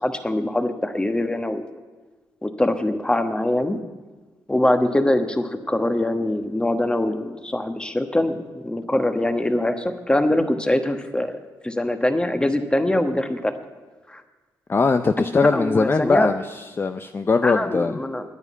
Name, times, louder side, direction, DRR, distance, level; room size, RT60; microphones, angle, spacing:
voice 1, 0.0-1.6 2.4-3.8 4.5-11.4 11.6-13.5 14.1-14.2 15.2-15.3 15.5-16.3 17.4-18.2, left 1 dB, 10° left, 8 dB, 1.3 m, -23 dB
voice 2, 14.7-17.9, left 4 dB, 30° left, 9 dB, 0.5 m, -20 dB
9.7 x 9.7 x 8.4 m, 1.3 s
cardioid pair, 65°, 7 cm